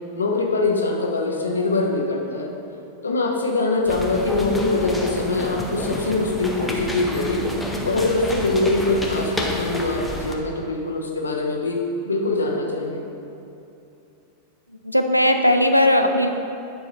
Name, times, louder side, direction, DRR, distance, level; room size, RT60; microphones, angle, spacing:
voice 1, 0.2-2.5 3.0-7.4 7.8-11.8 12.0-13.0, left 2 dB, 75° left, 0 dB, 0.9 m, -23 dB
sound 1, 3.9-10.3, left 1 dB, 5° left, 0.7 m, -29 dB
voice 2, 14.8-16.3, left 1 dB, 90° right, 6 dB, 0.4 m, -17 dB
9.5 x 3.8 x 4.1 m, 2.8 s
figure-of-eight pair, 90°, 0 cm